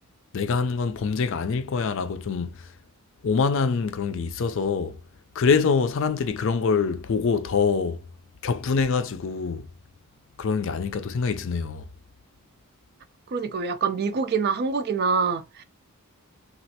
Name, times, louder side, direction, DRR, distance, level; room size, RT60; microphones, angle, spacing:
voice 1, 0.3-2.7 3.2-5.0 5.3-8.0 8.4-9.7 10.4-11.8, left 5 dB, 60° left, 0.4 m, -25 dB
voice 2, 13.3-15.6, right 5 dB, 45° right, 0.4 m, -25 dB
3.1 x 2.4 x 2.8 m
head